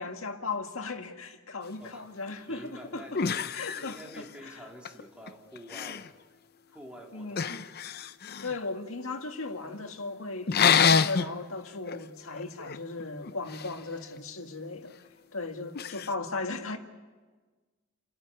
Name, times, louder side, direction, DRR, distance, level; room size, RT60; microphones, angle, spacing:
voice 1, 0.0-3.2 3.5-4.6 7.1-7.6 8.4-15.0 15.3-16.8, left 3 dB, 80° left, 1.9 m, -37 dB
sound 1, 2.5-2.6 3.1-4.5 4.9-5.3 5.6-6.1 7.4-8.6 10.5-11.3 11.8-12.0 12.3-13.7 15.8-16.1, left 6 dB, 50° left, 0.6 m, -27 dB
voice 2, 2.5-6.2 6.7-7.6, equal, 5° right, 3.0 m, -48 dB
29.5 x 13.5 x 9.5 m
head